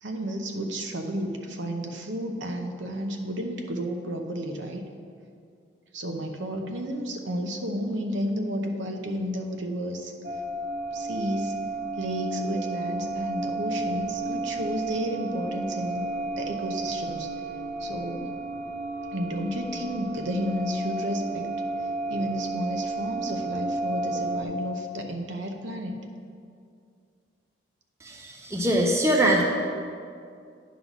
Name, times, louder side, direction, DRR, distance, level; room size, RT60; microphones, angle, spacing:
voice 1, 0.0-4.8 5.9-10.1 10.9-11.5 12.0-16.0 16.4-17.3 17.8-18.4 19.1-21.5 22.1-26.0, equal, 80° right, 4 dB, 0.8 m, -32 dB
sound 1, 10.2-24.4, right 2 dB, 55° right, 0.6 m, -32 dB
voice 2, 28.0-29.4, right 1 dB, 15° right, 0 dB, 0.6 m, -23 dB
9.5 x 4.0 x 6.0 m, 2.3 s
head